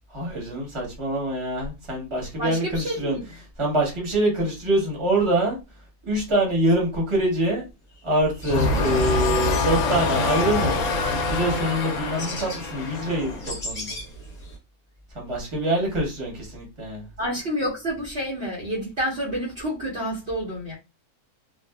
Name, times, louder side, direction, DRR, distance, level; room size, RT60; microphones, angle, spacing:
voice 1, 0.1-3.2 3.6-5.6 6.0-7.6 8.0-10.8 11.3-14.0 15.1-17.1, right 1 dB, 25° right, 1.0 m, -25 dB
voice 2, 2.4-3.3 17.2-20.7, equal, 50° right, 0.9 m, -29 dB
songthrush with cows, 8.0-8.1 8.3-14.6, left 1 dB, 35° left, 0.8 m, -39 dB
sound 1, 8.4-13.6, left 4 dB, 70° left, 0.8 m, -25 dB
2.6 x 2.3 x 2.2 m
omnidirectional pair, 1.6 m